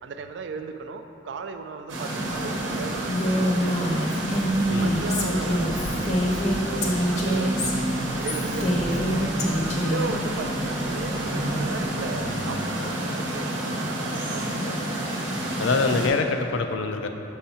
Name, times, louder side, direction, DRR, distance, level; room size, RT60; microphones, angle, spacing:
voice 1, 0.0-4.1 4.8-7.6 8.2-9.2 9.8-14.8, right 4 dB, 65° right, 8 dB, 0.3 m, -37 dB
sound 1, 1.9-16.1, right 1 dB, 85° right, 0.9 m, -29 dB
sound 2, 2.2-12.1, equal, 40° right, 0.9 m, -42 dB
Female speech woman speaking, 3.1-10.1, equal, 35° left, 0.6 m, -25 dB
voice 2, 15.6-17.1, left 4 dB, 80° left, 6 dB, 0.4 m, -24 dB
6.3 x 5.6 x 2.8 m, 3.0 s
head